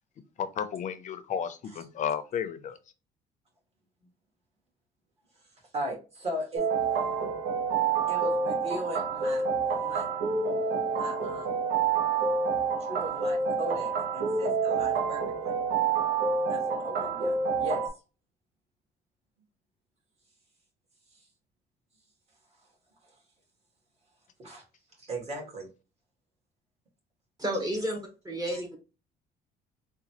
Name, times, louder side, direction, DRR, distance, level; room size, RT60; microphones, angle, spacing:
voice 1, 0.4-2.8, left 8 dB, 45° left, 11 dB, 0.5 m, -33 dB
voice 2, 5.7-6.6 8.1-9.5 9.8-10.1 10.9-11.5 12.9-15.6 16.5-17.8 24.4-24.6 25.0-25.7 28.5-28.6, right 1 dB, 35° right, -3 dB, 1.9 m, -37 dB
sound 1, 6.6-17.9, right 5 dB, 75° right, 0.8 m, -28 dB
voice 3, 27.4-28.0 28.2-28.8, right 1 dB, 20° right, 1 dB, 1.0 m, -31 dB
3.8 x 2.3 x 2.9 m, 0.32 s
cardioid pair, 110°, 17 cm